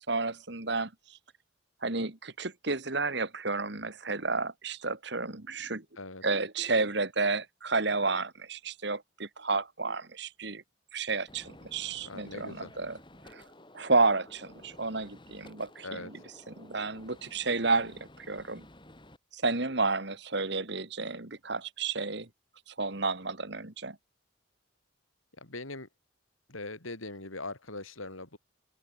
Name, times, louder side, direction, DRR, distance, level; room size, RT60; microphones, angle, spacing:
voice 1, 0.1-0.9 1.8-5.8 6.2-10.6 10.9-13.0 13.3-13.4 13.7-16.1 16.5-18.7 19.3-22.3 22.7-24.0, right 3 dB, 55° right, 2.0 m, -31 dB
Gunshot gunfire, 11.3-19.2, left 1 dB, 25° left, 3.9 m, -54 dB
voice 2, 12.0-12.7 15.8-16.1 25.4-25.9 26.5-28.4, left 2 dB, 85° left, 5.6 m, -41 dB
open air
head